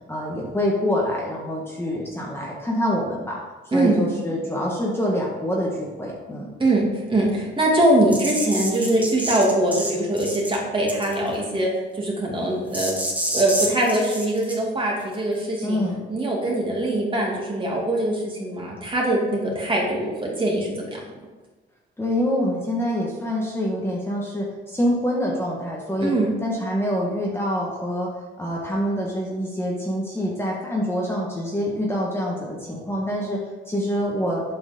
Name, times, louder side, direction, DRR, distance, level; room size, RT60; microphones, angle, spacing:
voice 1, 0.1-3.4 3.7-6.5 15.6-16.0 22.0-26.1 26.4-28.1 28.4-34.4, equal, 10° left, -4 dB, 1.7 m, -26 dB
voice 2, 3.7-4.1 6.6-13.0 13.3-15.8 16.1-21.0 26.0-26.3, right 1 dB, 25° right, -3 dB, 2.8 m, -22 dB
sound 1, 8.1-9.9 10.2-10.6 10.9-11.3 12.7-14.5, right 1 dB, 5° right, 2.3 m, -28 dB
8.5 x 5.3 x 5.3 m, 1.2 s
cardioid pair, 90°, 20 cm